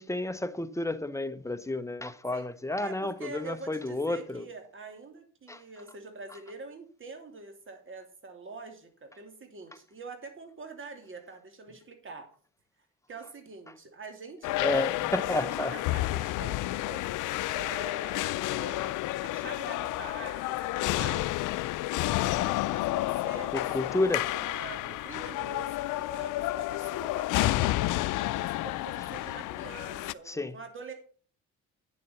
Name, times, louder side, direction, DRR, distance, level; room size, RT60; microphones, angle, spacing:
voice 1, 0.0-4.4 5.5-5.6 14.6-15.7 23.5-24.3 30.3-30.5, left 2 dB, 10° left, 0.9 m, -31 dB
voice 2, 2.8-12.3 13.1-17.0 17.5-18.2 18.5-21.3 22.2-28.0 28.3-30.9, right 3 dB, 40° right, 2.9 m, -45 dB
sound 1, 14.4-30.1, left 17 dB, 85° left, 0.5 m, -30 dB
9.2 x 7.5 x 5.6 m
cardioid pair, 90°, 30 cm